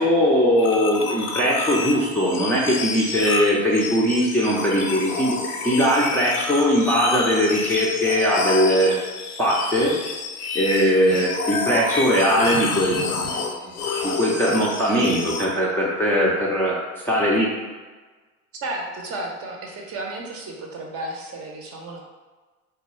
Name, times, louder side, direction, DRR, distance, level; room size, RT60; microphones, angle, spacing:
voice 1, 0.0-5.4 5.6-9.0 9.4-9.9 10.5-13.5 14.0-16.8 17.0-17.5, equal, 5° left, -6 dB, 0.5 m, -20 dB
sound 1, 0.6-15.5, left 4 dB, 85° left, 0.6 m, -29 dB
voice 2, 14.9-15.4 18.6-22.0, right 2 dB, 35° right, 0 dB, 0.7 m, -33 dB
3.6 x 2.3 x 3.1 m, 1.3 s
hypercardioid pair, 75°, 43 cm